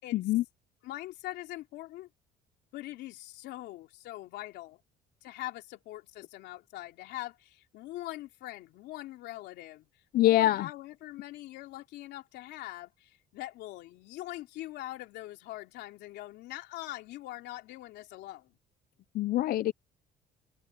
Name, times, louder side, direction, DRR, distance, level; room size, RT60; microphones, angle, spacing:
voice 1, 0.1-0.4 10.1-10.7 19.1-19.7, left 14 dB, 60° left, 0.5 m, -24 dB
voice 2, 0.8-2.1 2.7-4.8 5.2-9.9 10.2-18.5, left 16 dB, 85° left, 3.3 m, -42 dB
open air
cardioid pair, 110°, 17 cm